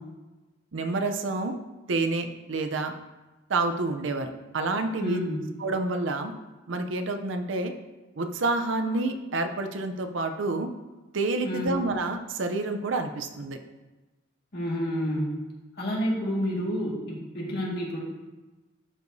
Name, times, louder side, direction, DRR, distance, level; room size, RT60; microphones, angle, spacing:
voice 1, 0.7-1.6 1.9-2.9 3.5-5.2 5.6-6.3 6.7-7.7 8.2-10.7 11.1-13.6, right 3 dB, 70° right, 6 dB, 0.6 m, -28 dB
voice 2, 5.0-5.5 11.4-11.8 14.5-15.4 15.8-18.0, equal, 55° left, -4 dB, 1.9 m, -29 dB
12.0 x 4.7 x 2.7 m, 1.1 s
head